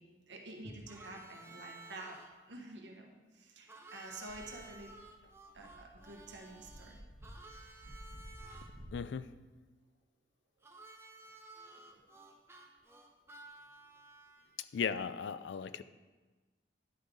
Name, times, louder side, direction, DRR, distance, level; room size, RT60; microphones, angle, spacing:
voice 1, 0.0-2.2 2.5-4.9 5.5-7.0 11.6-12.1, right 2 dB, 80° right, 1 dB, 1.2 m, -49 dB
Harmonica, 0.9-2.3 3.7-8.7 10.6-14.6, right 2 dB, 15° right, 0.6 m, -54 dB
sound 1, 4.1-9.0, equal, 60° right, 1.4 m, -53 dB
voice 2, 8.9-9.3 14.6-15.8, left 6 dB, 75° left, 14 dB, 0.3 m, -37 dB
10.5 x 4.9 x 3.8 m, 1.3 s
head